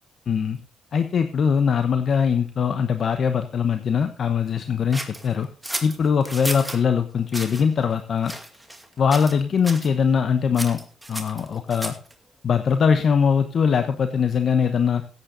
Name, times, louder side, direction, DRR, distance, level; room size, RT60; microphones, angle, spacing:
voice 1, 0.3-0.6 0.9-5.5 5.8-8.3 9.0-10.8 11.1-11.9 12.4-15.0, left 6 dB, 55° left, 8 dB, 1.0 m, -21 dB
sound 1, 4.9-6.8 7.3-7.6 8.2-8.9 9.1-9.4 9.6-9.9 10.5-12.1, right 1 dB, 5° right, 2.3 m, -33 dB
16.0 x 8.8 x 3.9 m, 0.38 s
cardioid pair, 90°, 0 cm